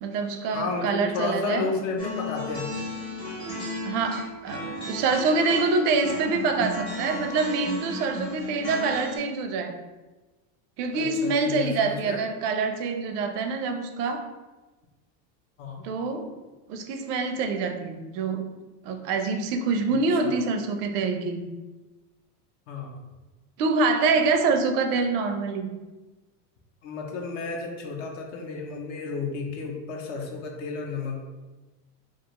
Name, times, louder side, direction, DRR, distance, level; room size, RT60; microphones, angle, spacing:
voice 1, 0.0-1.7 3.8-9.8 10.8-14.3 15.8-16.3 16.7-18.6 18.8-21.5 23.6-25.8, right 4 dB, 80° right, 6 dB, 0.5 m, -26 dB
voice 2, 0.5-2.7 10.9-12.2 15.6-15.8 19.9-20.4 22.7-22.9 26.8-31.2, left 4 dB, 55° left, 2 dB, 0.5 m, -32 dB
sound 1, 2.0-9.2, equal, 10° left, 0.6 m, -34 dB
2.4 x 2.3 x 2.9 m, 1.2 s
supercardioid pair, 170°, 46 cm